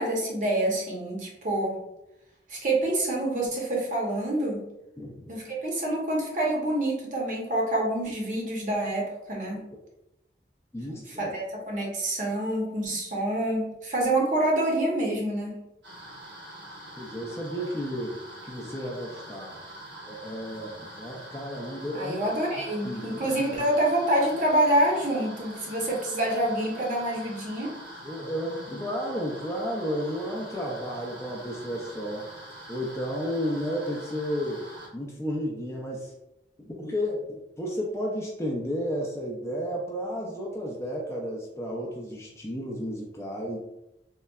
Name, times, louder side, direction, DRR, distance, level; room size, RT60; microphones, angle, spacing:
voice 1, 0.0-1.8 2.5-4.6 5.3-9.6 10.9-15.6 21.9-27.7, right 1 dB, 45° right, -2 dB, 0.7 m, -27 dB
voice 2, 10.7-11.3 17.0-19.6 20.1-22.2 22.8-23.3 28.0-32.2 32.7-34.6 34.9-36.1 36.6-43.6, equal, 15° left, -2 dB, 0.4 m, -32 dB
sound 1, 15.8-34.9, right 1 dB, 90° right, 1.0 m, -44 dB
3.6 x 2.1 x 2.2 m, 0.88 s
head